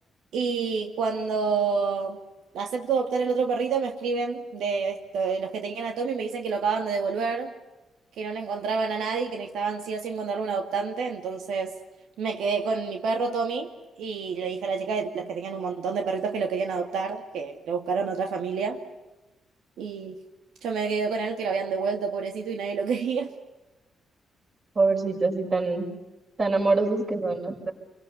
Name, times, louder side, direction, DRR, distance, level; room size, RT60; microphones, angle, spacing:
voice 1, 0.3-2.2 2.5-7.5 8.2-11.8 12.2-13.7 14.0-18.8 19.8-20.2 20.6-23.3, right 5 dB, 85° right, 4 dB, 2.3 m, -28 dB
voice 2, 24.8-25.9 26.4-27.7, right 3 dB, 35° right, 2 dB, 5.9 m, -24 dB
29.5 x 23.5 x 6.8 m, 1.1 s
cardioid pair, 130°, 0 cm